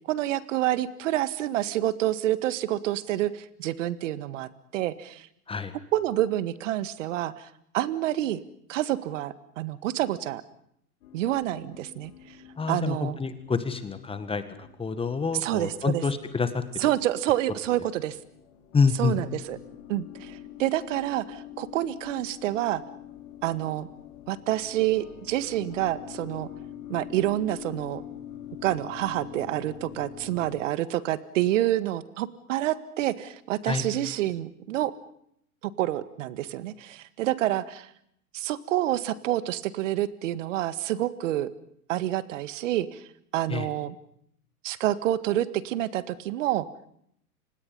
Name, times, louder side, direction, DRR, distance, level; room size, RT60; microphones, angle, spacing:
voice 1, 0.1-5.3 5.9-7.5 7.7-8.4 8.7-10.4 11.1-12.1 12.7-13.2 15.4-16.0 16.8-18.2 19.0-19.6 19.9-22.8 23.4-23.9 24.3-26.5 26.9-28.0 28.6-34.9 35.6-37.9 38.3-41.5 41.9-43.0 43.3-44.0 44.6-46.7, right 14 dB, 55° right, 13 dB, 1.8 m, -28 dB
sound 1, 11.0-30.6, left 10 dB, 55° left, 4.7 m, -45 dB
voice 2, 12.6-16.9 18.7-19.2 33.6-33.8 43.5-43.7, left 5 dB, 10° left, 10 dB, 1.8 m, -27 dB
30.0 x 26.0 x 5.5 m, 0.72 s
hypercardioid pair, 105°, 45 cm